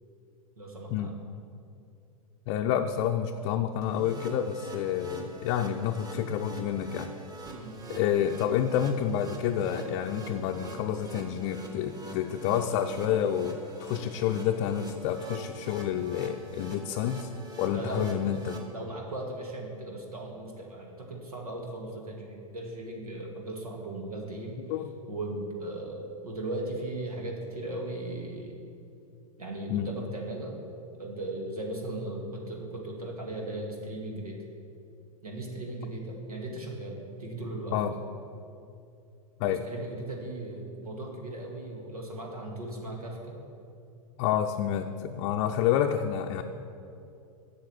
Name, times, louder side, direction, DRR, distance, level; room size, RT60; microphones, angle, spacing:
voice 1, 0.6-1.3 4.0-4.1 7.5-7.8 17.7-18.2 18.7-24.6 25.1-28.5 29.4-30.6 31.0-34.4 35.2-37.8 39.5-43.4, right 2 dB, 85° right, 0 dB, 2.0 m, -37 dB
voice 2, 2.5-7.1 7.9-17.3 17.6-18.6 24.7-24.9 29.7-29.9 37.7-37.9 39.4-39.6 44.2-46.4, left 9 dB, 45° left, 3 dB, 0.5 m, -29 dB
sound 1, 3.8-18.6, right 2 dB, 20° right, 1.6 m, -44 dB
8.1 x 6.5 x 7.8 m, 2.6 s
hypercardioid pair, 100°, 18 cm